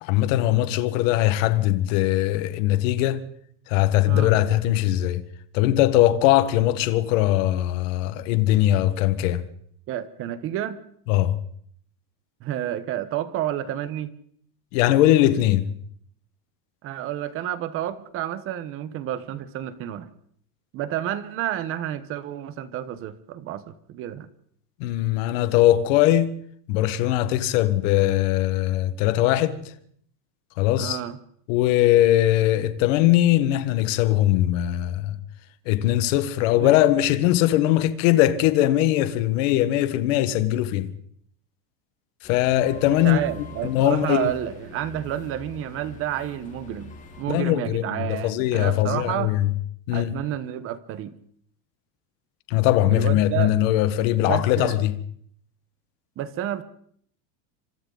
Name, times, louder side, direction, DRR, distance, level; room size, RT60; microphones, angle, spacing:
voice 1, 0.0-3.2 3.7-5.2 5.5-9.4 11.1-11.4 14.7-15.7 24.8-26.3 26.7-29.6 30.6-31.0 31.5-35.2 35.6-40.9 42.2-43.2 43.6-44.3 47.3-49.5 49.9-50.2 52.5-54.9, left 14 dB, 50° left, 1.6 m, -21 dB
voice 2, 4.1-4.4 9.9-10.8 12.4-14.1 16.8-20.1 20.7-24.3 30.8-31.2 36.6-36.7 42.9-49.3 49.9-51.1 52.9-53.5 54.2-54.8 56.2-56.6, right 11 dB, 25° right, 1.1 m, -30 dB
sound 1, 42.2-47.2, left 5 dB, 15° left, 3.0 m, -44 dB
28.0 x 25.5 x 4.0 m
supercardioid pair, 180°, 50 cm